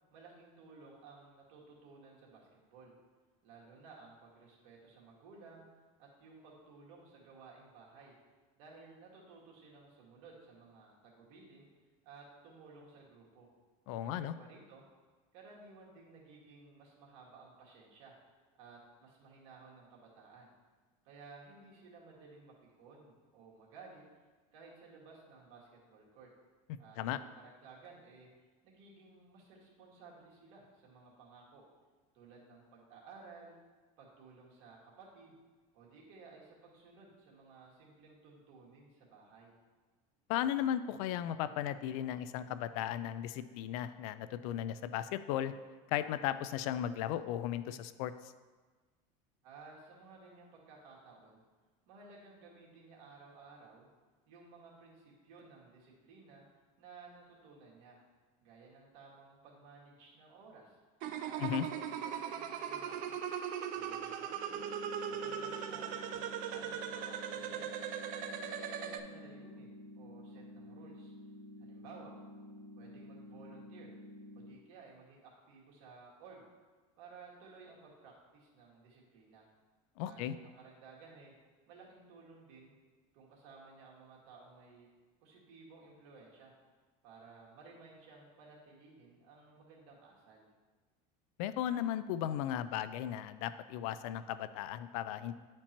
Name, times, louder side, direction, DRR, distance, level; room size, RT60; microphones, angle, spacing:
voice 1, 0.1-2.9 3.4-5.7 6.0-8.1 8.6-11.7 12.0-13.5 14.0-14.8 15.3-18.1 18.6-20.5 21.0-24.2 24.5-26.3 26.8-31.6 32.1-33.6 34.0-35.4 35.7-39.6 49.4-51.4 51.9-53.9 54.3-56.4 56.8-58.0 58.4-60.8 61.2-63.2 63.7-64.6 65.1-67.7 68.1-71.1 71.6-72.1 72.8-73.9 74.4-76.5 77.0-79.5 80.1-81.3 81.7-82.7 83.1-84.9 85.2-86.5 87.0-90.5, right 4 dB, 70° right, -3 dB, 1.9 m, -56 dB
voice 2, 13.9-14.3 27.0-27.2 40.3-45.5 45.9-48.1 61.4-61.7 80.0-80.3 91.4-95.3, left 11 dB, 75° left, 13 dB, 0.4 m, -36 dB
sound 1, 61.0-69.0, right 8 dB, 45° right, 0.5 m, -39 dB
sound 2, 64.5-74.5, left 1 dB, 15° right, 0.8 m, -51 dB
9.9 x 4.4 x 2.9 m, 1.3 s
supercardioid pair, 135°, 18 cm